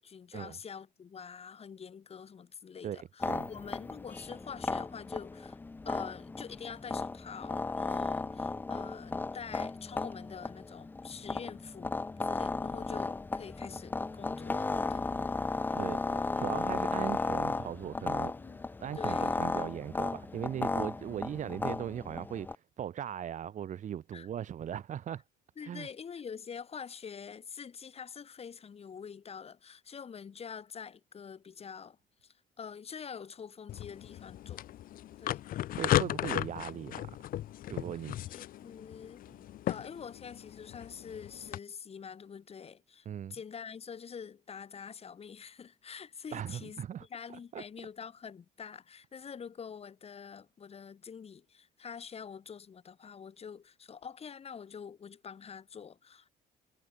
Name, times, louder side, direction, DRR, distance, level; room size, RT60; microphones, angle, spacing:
voice 1, 0.0-5.6 5.8-15.1 18.4-18.7 19.0-19.3 24.1-24.3 25.6-32.0 32.2-34.7 35.2-35.4 38.3-39.2 39.7-56.3, left 6 dB, 35° left, 3.3 m, -46 dB
voice 2, 2.8-3.5 15.7-18.3 18.8-25.2 25.6-25.9 35.7-37.1 37.7-38.2 43.0-43.4 46.3-47.1 47.5-47.6, right 10 dB, 45° right, 1.1 m, -39 dB
sound 1, 3.2-22.6, left 3 dB, 10° left, 0.3 m, -35 dB
sound 2, 33.7-41.6, left 13 dB, 55° left, 0.6 m, -36 dB
cardioid pair, 110°, 17 cm